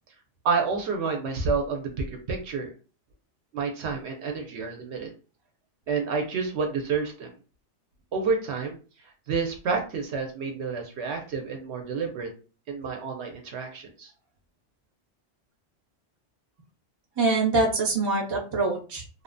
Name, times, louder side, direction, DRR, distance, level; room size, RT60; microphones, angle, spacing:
voice 1, 0.4-2.7 3.5-5.1 5.9-7.3 8.1-8.8 9.3-12.3 12.7-14.1, right 5 dB, 70° right, 3 dB, 0.8 m, -29 dB
voice 2, 17.2-19.2, right 3 dB, 25° right, -1 dB, 0.6 m, -25 dB
2.7 x 2.1 x 2.5 m, 0.36 s
omnidirectional pair, 1.2 m